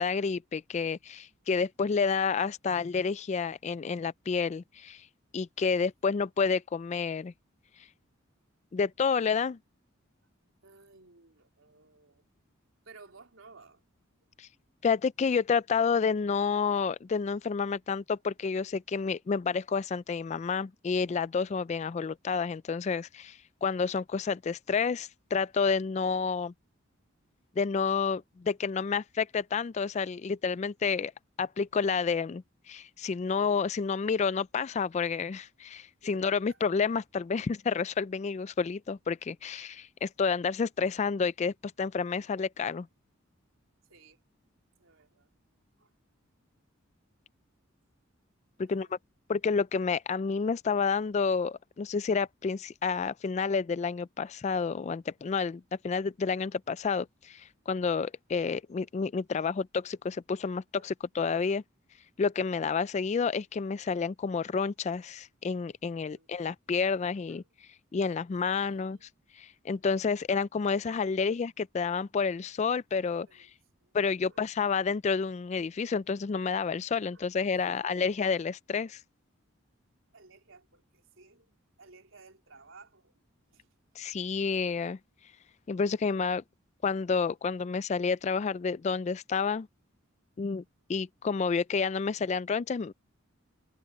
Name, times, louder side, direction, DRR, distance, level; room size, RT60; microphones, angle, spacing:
voice 1, 0.0-5.1 5.3-7.3 8.7-9.6 14.4-14.5 14.8-26.5 27.6-31.1 31.4-42.9 48.6-49.0 49.3-61.6 62.2-67.4 67.9-69.1 69.4-73.5 73.9-79.0 84.0-85.0 85.7-86.4 86.8-89.7 90.4-90.6 90.9-92.9, left 5 dB, 35° left, 0.3 m, -30 dB
voice 2, 10.6-12.3 12.8-13.8 36.0-36.6 43.9-44.2 44.8-45.3 45.8-45.9 48.6-48.9 60.7-60.9 66.0-66.3 67.3-67.4 68.4-69.1 71.2-71.3 73.3-74.0 74.3-74.4 77.1-77.3 77.5-78.1 80.1-81.5 81.8-83.2 83.5-83.7 87.6-87.8, right 3 dB, 75° right, 3.8 m, -57 dB
head